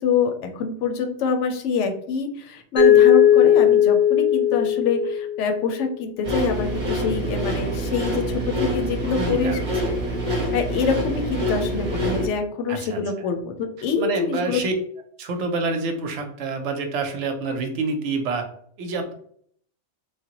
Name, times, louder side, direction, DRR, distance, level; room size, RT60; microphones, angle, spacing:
voice 1, 0.0-9.6 10.3-14.6, left 5 dB, 80° left, 5 dB, 0.9 m, -25 dB
Mallet percussion, 2.8-5.7, left 10 dB, 20° left, 0.7 m, -17 dB
sound 1, 6.2-12.3, right 1 dB, 50° right, 0.7 m, -26 dB
voice 2, 9.2-9.6 12.7-13.0 14.0-14.7 15.2-18.4 18.8-19.1, right 3 dB, 80° right, 5 dB, 0.9 m, -27 dB
3.2 x 2.1 x 2.8 m, 0.63 s
omnidirectional pair, 1.2 m